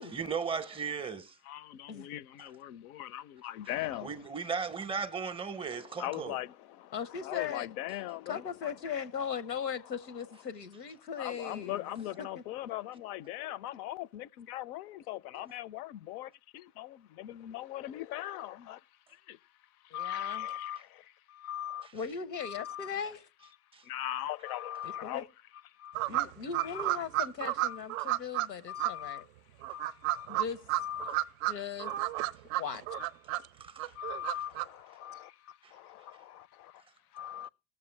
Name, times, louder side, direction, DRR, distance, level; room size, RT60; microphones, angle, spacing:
voice 1, 0.1-1.4 4.0-6.4 23.7-23.8 33.6-33.9 35.6-35.7, right 5 dB, 10° right, 0.6 m, -36 dB
voice 2, 1.4-4.3 5.6-8.8 9.8-10.2 11.2-18.8 19.3-19.4 19.9-21.9 22.4-23.2 23.8-25.3 25.8-26.0 26.6-26.8 27.6-28.2 28.7-29.2 29.7-30.3 30.8-31.2 31.8-32.3 32.9-33.1 33.9-36.7 37.1-37.5, left 13 dB, 65° left, 0.6 m, -40 dB
voice 3, 6.9-7.7 8.3-11.8 12.2-12.3 19.9-20.5 21.9-23.2 24.8-25.2 26.1-29.2 30.3-30.6 31.5-31.9 32.6-32.9, left 7 dB, 90° left, 1.0 m, -38 dB
sound 1, 26.0-28.5 28.8-28.9 29.6-31.5 31.8-33.5 33.8-34.6, right 16 dB, 55° right, 0.5 m, -31 dB
19.5 x 6.8 x 3.2 m
hypercardioid pair, 85°, 49 cm